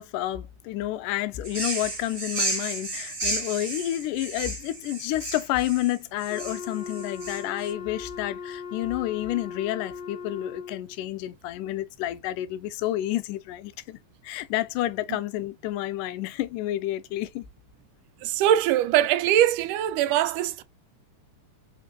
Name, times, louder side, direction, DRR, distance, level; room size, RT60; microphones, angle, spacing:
voice 1, 0.0-14.0 14.2-17.4, left 14 dB, 90° left, 2.1 m, -30 dB
sound 1, 1.4-7.7, right 2 dB, 45° right, 0.6 m, -32 dB
Wind instrument woodwind instrument, 6.3-11.0, left 5 dB, 40° left, 0.5 m, -38 dB
voice 2, 18.2-20.6, right 11 dB, 85° right, 2.0 m, -22 dB
5.1 x 2.5 x 2.7 m
omnidirectional pair, 3.6 m